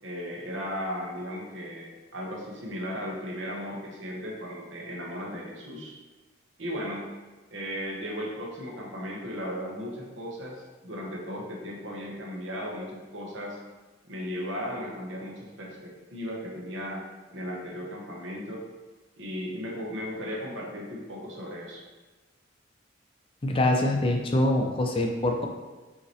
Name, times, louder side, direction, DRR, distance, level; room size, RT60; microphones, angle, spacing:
voice 1, 0.0-6.0 6.6-7.1 7.5-13.6 14.1-17.0 17.3-18.6 19.2-21.8, equal, 80° right, -2 dB, 1.0 m, -36 dB
voice 2, 23.4-25.5, left 1 dB, 30° left, 2 dB, 0.4 m, -24 dB
5.4 x 2.8 x 3.1 m, 1.2 s
head